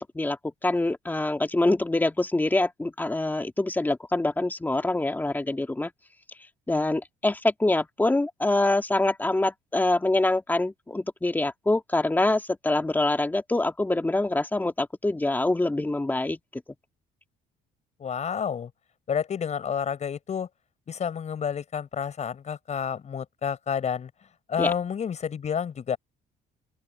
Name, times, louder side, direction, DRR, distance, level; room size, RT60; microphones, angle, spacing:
voice 1, 0.0-5.9 6.7-16.6 24.6-24.7, left 2 dB, 10° left, 2.3 m, -25 dB
voice 2, 18.0-18.7 19.1-20.5 20.9-24.1 24.5-26.0, left 7 dB, 40° left, 5.6 m, -29 dB
open air
cardioid pair, 110°, 17 cm